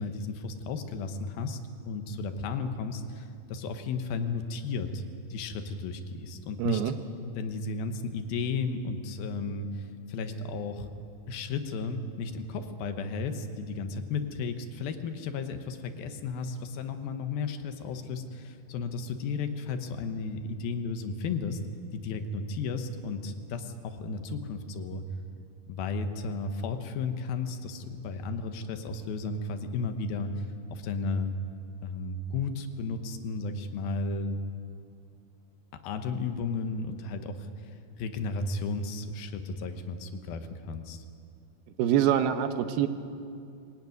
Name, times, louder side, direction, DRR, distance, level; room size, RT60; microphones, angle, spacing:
voice 1, 0.0-5.0 5.3-6.8 7.4-10.9 11.3-21.6 21.9-25.0 25.7-31.4 31.8-34.4 35.8-37.5 38.0-41.0, left 4 dB, 75° left, 7 dB, 2.9 m, -34 dB
voice 2, 6.6-6.9 41.8-42.9, right 10 dB, 85° right, 9 dB, 3.0 m, -25 dB
23.0 x 16.5 x 9.5 m, 2.5 s
omnidirectional pair, 4.4 m